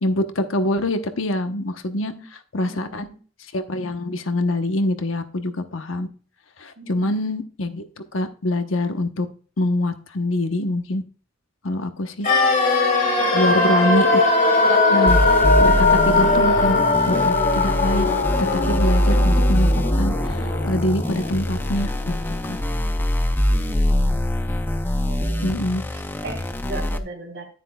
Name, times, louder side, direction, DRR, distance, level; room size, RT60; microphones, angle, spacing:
voice 1, 0.0-2.1 2.5-3.1 3.5-6.1 6.6-7.8 8.1-9.3 9.6-11.0 11.6-12.3 13.3-14.2 14.6-15.2 15.6-18.1 18.5-21.9 22.3-22.6 25.4-25.8, left 1 dB, 70° left, 7 dB, 1.0 m, -25 dB
voice 2, 1.9-2.2 2.7-3.2 6.8-7.2 13.1-13.7 23.5-24.3 24.9-25.6 25.9-27.5, right 3 dB, 60° right, 3 dB, 3.1 m, -38 dB
sound 1, 12.2-22.2 22.4-22.5, left 3 dB, 40° left, 2.3 m, -20 dB
sound 2, 15.1-27.0, equal, 10° left, 0.5 m, -23 dB
10.0 x 9.8 x 2.3 m, 0.40 s
head